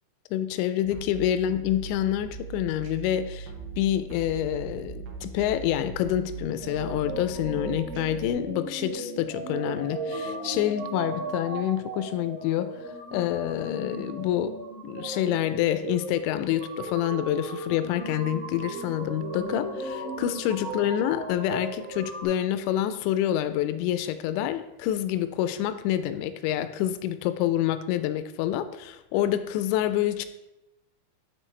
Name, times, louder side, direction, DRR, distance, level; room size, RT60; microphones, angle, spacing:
voice 1, 0.3-3.5 3.8-12.7 13.1-14.6 14.8-30.3, left 12 dB, 85° left, 11 dB, 2.8 m, -27 dB
sound 1, 0.8-8.3, right 5 dB, 75° right, 1.9 m, -39 dB
sound 2, 6.6-22.2, right 2 dB, 60° right, 1.2 m, -36 dB
12.0 x 4.1 x 3.2 m, 0.91 s
omnidirectional pair, 5.1 m